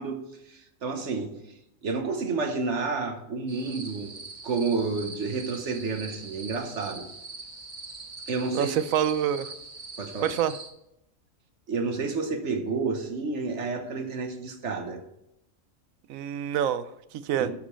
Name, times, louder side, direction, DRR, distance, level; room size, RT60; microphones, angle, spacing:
voice 1, 0.0-1.4 1.8-4.1 4.4-7.1 8.3-8.7 10.0-10.3 11.7-15.0 17.4-17.5, right 4 dB, 60° right, 6 dB, 1.4 m, -30 dB
sound 1, 3.5-10.7, right 3 dB, 40° right, 1.2 m, -42 dB
voice 2, 8.5-9.5 10.2-10.5 16.1-17.5, right 9 dB, 85° right, 13 dB, 1.0 m, -27 dB
12.0 x 5.1 x 5.6 m, 0.84 s
omnidirectional pair, 1.4 m